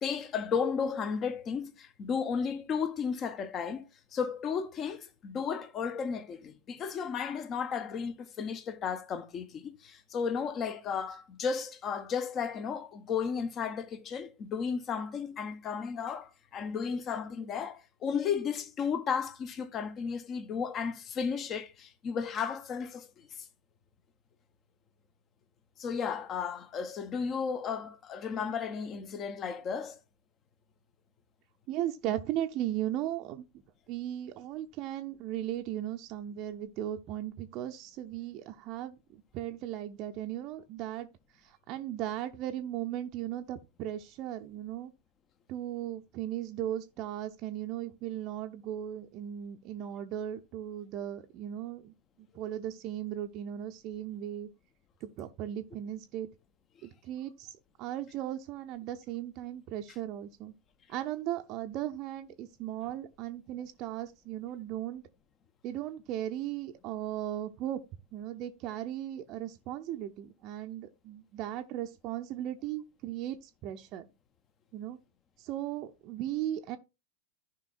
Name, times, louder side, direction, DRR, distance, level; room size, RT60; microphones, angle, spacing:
voice 1, 0.0-23.3 25.8-30.0, left 6 dB, 30° left, 1.0 m, -34 dB
voice 2, 31.7-33.5 33.9-41.1 41.7-44.9 45.5-54.5 55.0-56.3 56.8-57.5 57.8-60.5 60.9-65.0 65.6-67.8 68.1-73.4 73.6-74.1 74.7-75.0 75.4-76.8, right 12 dB, 40° right, 0.7 m, -37 dB
14.5 x 5.3 x 2.5 m
figure-of-eight pair, 90°, 0 cm